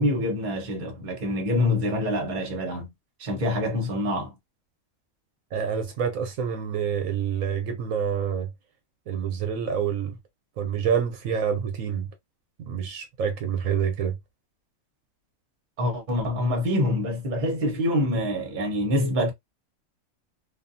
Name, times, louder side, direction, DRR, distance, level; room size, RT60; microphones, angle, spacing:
voice 1, 0.0-2.9 3.2-4.3 15.8-19.3, left 1 dB, 40° right, 0.9 m, -25 dB
voice 2, 5.5-8.5 9.1-10.2 10.6-12.1 12.7-14.2, right 7 dB, 75° right, 1.0 m, -27 dB
2.6 x 2.5 x 2.5 m
omnidirectional pair, 1.4 m